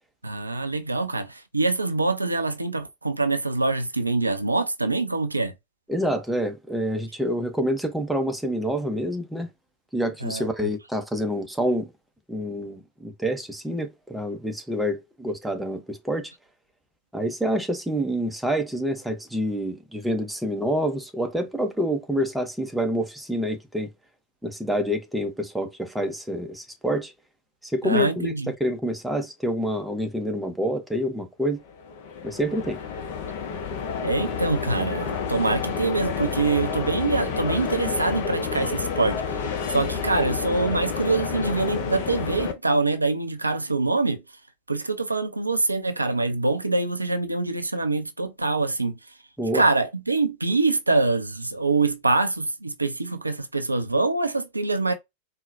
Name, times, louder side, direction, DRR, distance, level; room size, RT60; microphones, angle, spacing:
voice 1, 0.2-5.5 10.2-10.5 27.8-28.5 34.0-44.2 44.7-49.0 49.5-54.9, right 3 dB, 80° right, 0.4 m, -25 dB
voice 2, 5.9-9.5 9.9-11.9 12.3-16.3 17.1-23.9 24.4-27.1 27.6-31.6 32.2-32.8 49.4-49.6, equal, 5° right, 0.6 m, -27 dB
sound 1, 31.6-42.5, left 6 dB, 50° left, 0.6 m, -29 dB
3.9 x 2.1 x 2.5 m
figure-of-eight pair, 90°, 0 cm